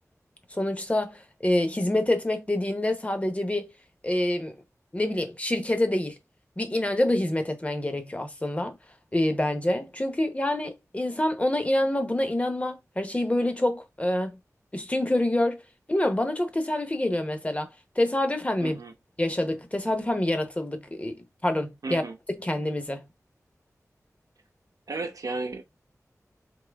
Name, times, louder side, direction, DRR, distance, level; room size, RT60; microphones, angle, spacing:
voice 1, 0.5-3.7 4.0-4.5 4.9-6.2 6.6-8.8 9.1-14.4 14.7-15.6 15.9-17.7 18.0-18.8 19.2-22.0 22.4-23.0, left 1 dB, 25° left, 0.8 m, -26 dB
voice 2, 18.6-18.9 21.8-22.2 24.9-25.6, right 3 dB, 85° right, 0.7 m, -33 dB
3.8 x 2.7 x 3.4 m
wide cardioid pair, 75°, 6 cm